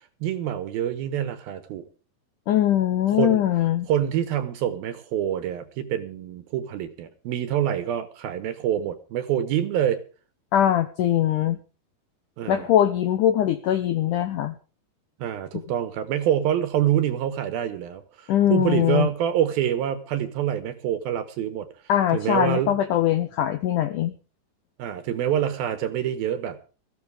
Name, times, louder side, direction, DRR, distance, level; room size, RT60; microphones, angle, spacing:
voice 1, 0.2-1.9 3.1-3.4 3.9-10.0 12.4-12.7 15.2-21.7 22.1-22.8 24.8-26.6, right 10 dB, 70° right, 12 dB, 2.8 m, -26 dB
voice 2, 2.5-3.9 10.5-11.6 12.5-14.6 15.5-15.6 18.3-19.1 21.9-24.1, left 11 dB, 85° left, 10 dB, 1.8 m, -21 dB
19.5 x 14.5 x 3.5 m, 0.35 s
omnidirectional pair, 4.8 m